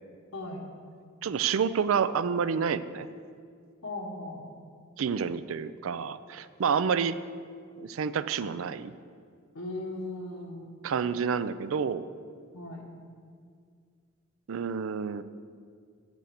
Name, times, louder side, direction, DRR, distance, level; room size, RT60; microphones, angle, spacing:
voice 1, 0.3-0.7 3.8-4.5 9.5-10.7 12.5-12.9, left 2 dB, 90° left, -1 dB, 1.3 m, -38 dB
voice 2, 1.2-3.1 5.0-7.2 7.8-8.9 10.8-12.0 14.5-15.2, right 6 dB, 75° right, 14 dB, 0.4 m, -29 dB
8.3 x 7.7 x 6.6 m, 2.1 s
head